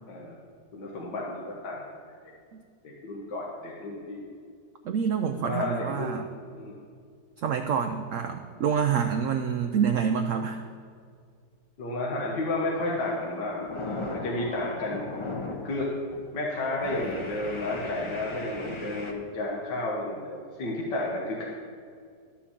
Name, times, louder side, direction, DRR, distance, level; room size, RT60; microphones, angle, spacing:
voice 1, 0.7-2.2 2.8-4.3 5.3-6.3 6.5-6.7 11.8-15.0 15.6-15.9 16.3-21.4, left 2 dB, 80° left, -3 dB, 1.9 m, -32 dB
voice 2, 4.8-6.2 7.4-10.6, right 7 dB, 70° right, 6 dB, 0.7 m, -27 dB
sound 1, 12.7-13.0 13.3-15.8 16.1-16.3 16.8-19.1, left 2 dB, 25° left, 0.7 m, -37 dB
11.5 x 5.8 x 7.1 m, 2.2 s
omnidirectional pair, 1.8 m